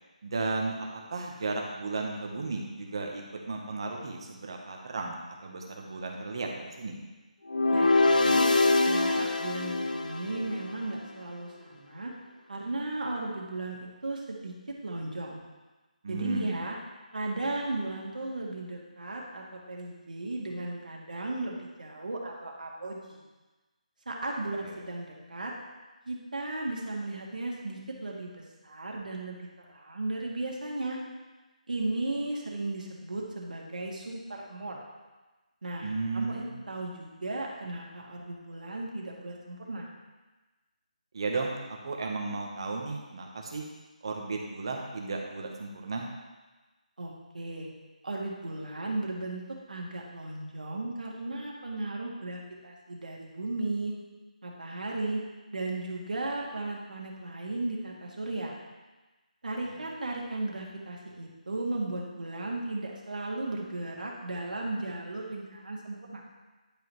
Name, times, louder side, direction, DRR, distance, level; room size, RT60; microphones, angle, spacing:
voice 1, 0.2-7.0 16.0-16.6 24.6-24.8 35.8-36.5 41.1-43.6 44.0-46.1 59.7-59.8, right 3 dB, 40° right, 1 dB, 1.0 m, -34 dB
sound 1, 7.5-10.7, left 2 dB, 80° left, 0.7 m, -24 dB
voice 2, 7.7-8.5 8.9-12.1 12.5-14.5 14.8-15.4 16.1-16.8 17.1-23.2 24.1-25.5 26.1-31.0 31.7-34.8 35.6-39.9 47.0-47.7 48.0-49.4 49.7-53.9 54.4-55.2 55.5-58.6 59.4-66.2, right 2 dB, 80° right, -2 dB, 1.9 m, -35 dB
10.5 x 5.0 x 3.1 m, 1.2 s
hypercardioid pair, 175°, 4 cm